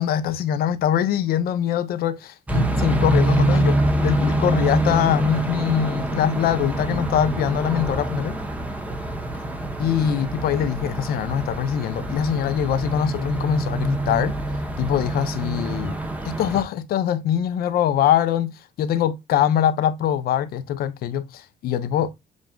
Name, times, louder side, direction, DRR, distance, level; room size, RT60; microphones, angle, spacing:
voice 1, 0.0-8.4 9.8-14.4 14.8-15.9 16.2-18.5 18.8-22.1, left 9 dB, 65° left, 0.6 m, -23 dB
sound 1, 2.5-16.6, right 1 dB, 10° right, 0.8 m, -25 dB
7.1 x 2.4 x 2.2 m
cardioid pair, 110°, 17 cm